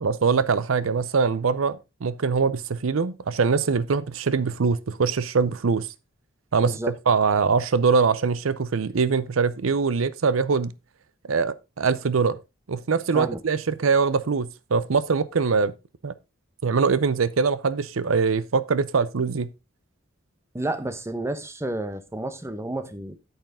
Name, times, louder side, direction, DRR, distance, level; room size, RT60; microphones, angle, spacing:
voice 1, 0.0-5.9 6.5-6.8 7.1-10.7 11.3-12.4 12.7-15.7 16.0-16.1 16.6-19.5, right 5 dB, 85° right, 0.6 m, -23 dB
voice 2, 6.6-6.9 13.1-13.4 20.5-23.1, right 1 dB, 15° right, 1.0 m, -30 dB
8.9 x 8.1 x 3.6 m
head